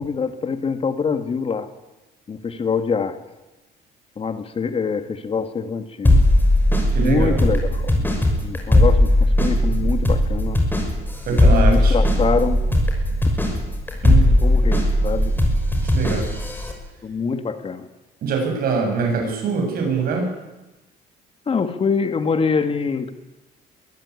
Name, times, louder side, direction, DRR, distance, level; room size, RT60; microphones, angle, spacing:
voice 1, 0.0-1.7 2.3-3.2 4.2-6.2 7.0-10.6 11.3-12.6 14.4-15.3 17.0-17.9 21.5-23.1, left 5 dB, 35° left, 9 dB, 1.9 m, -24 dB
sound 1, 6.0-16.7, left 1 dB, 10° left, 6.1 m, -18 dB
voice 2, 6.9-7.4 11.3-12.0 13.4-13.5 14.0-14.4 15.9-16.3 18.2-20.3, right 5 dB, 60° right, 2 dB, 7.9 m, -23 dB
23.5 x 15.0 x 9.7 m, 1.1 s
cardioid pair, 110°, 17 cm